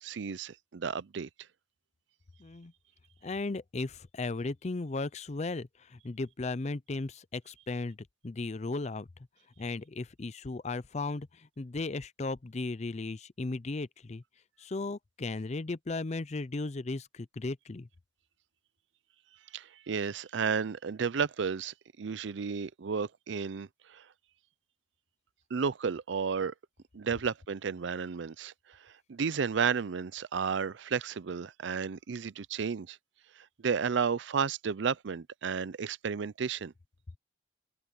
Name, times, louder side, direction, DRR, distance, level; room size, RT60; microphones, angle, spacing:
voice 1, 0.0-1.3 19.5-24.0 25.5-26.5 26.9-28.5 29.1-33.0 33.6-36.7, right 6 dB, 70° right, 0.5 m, -32 dB
voice 2, 2.4-2.7 3.2-9.1 9.6-14.2 14.6-17.9, left 3 dB, 35° left, 0.5 m, -36 dB
open air
head